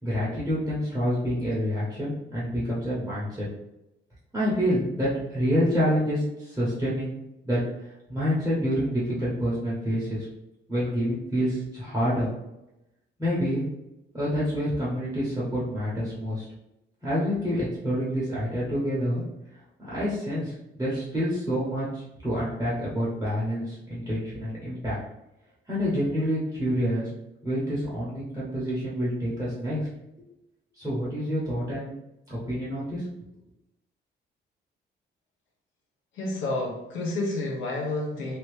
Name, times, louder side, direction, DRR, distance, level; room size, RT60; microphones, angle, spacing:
voice 1, 0.0-3.5 4.3-7.2 7.4-10.3 10.7-12.3 13.2-13.6 14.1-16.4 17.0-19.2 19.8-25.0 25.7-27.1 27.4-29.9 30.8-32.0 32.3-33.0, equal, 10° right, -7 dB, 1.1 m, -27 dB
voice 2, 36.1-38.4, left 2 dB, 80° left, -2 dB, 0.9 m, -30 dB
2.9 x 2.8 x 3.2 m, 0.91 s
cardioid pair, 90°, 20 cm